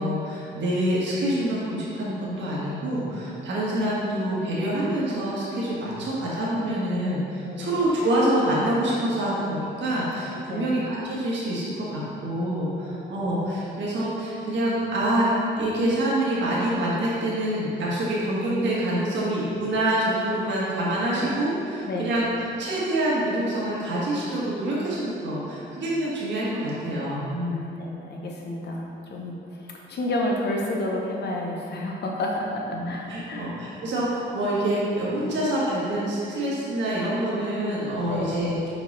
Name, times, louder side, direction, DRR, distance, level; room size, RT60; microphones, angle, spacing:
voice 1, 0.0-22.3 22.6-27.7 32.7-38.7, right 1 dB, 65° right, -7 dB, 1.5 m, -26 dB
voice 2, 27.5-33.8 38.1-38.3, left 1 dB, 55° left, -1 dB, 1.0 m, -30 dB
5.6 x 4.4 x 4.1 m, 2.6 s
cardioid pair, 90°, 20 cm